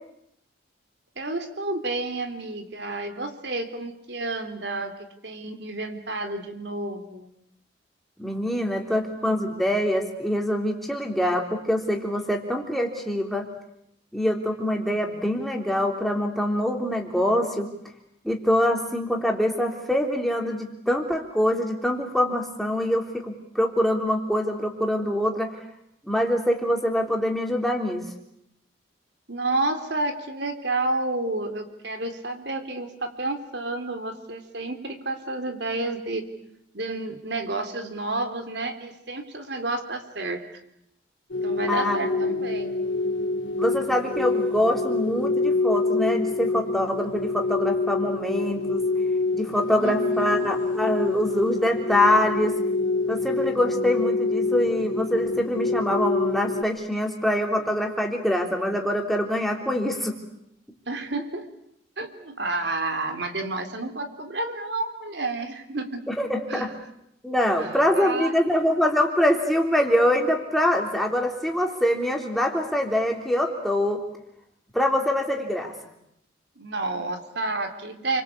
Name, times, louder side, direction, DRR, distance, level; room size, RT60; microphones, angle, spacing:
voice 1, 1.1-4.9 5.2-7.3 29.3-36.3 36.7-40.4 41.4-42.8 49.7-50.5 60.9-61.5 62.0-66.1 66.5-66.7 67.6-68.5 76.6-78.2, right 2 dB, 65° right, 7 dB, 3.4 m, -30 dB
voice 2, 8.2-13.5 14.1-17.7 18.2-25.6 26.1-28.1 41.7-42.4 43.6-48.8 49.3-52.5 53.1-60.2 66.1-66.7 67.2-74.0 74.7-75.7, left 1 dB, ahead, 2 dB, 3.5 m, -24 dB
sound 1, 41.3-56.6, left 3 dB, 80° left, 2.2 m, -26 dB
29.5 x 23.5 x 8.5 m, 0.76 s
head